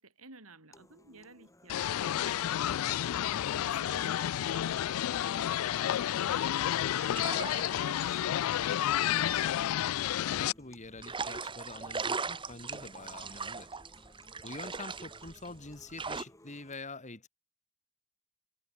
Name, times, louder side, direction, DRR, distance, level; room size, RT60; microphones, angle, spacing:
voice 1, 0.0-3.3 3.5-8.8, right 3 dB, 80° right, 7.9 m, -55 dB
sound 1, 0.7-16.7, left 1 dB, 15° left, 7.2 m, -60 dB
sound 2, 1.7-10.5, left 11 dB, 75° left, 0.3 m, -30 dB
sound 3, 7.0-10.2 11.0-16.2, right 4 dB, 25° right, 1.2 m, -39 dB
voice 2, 9.0-9.9 10.2-13.7 14.4-17.3, left 2 dB, 35° left, 3.8 m, -46 dB
head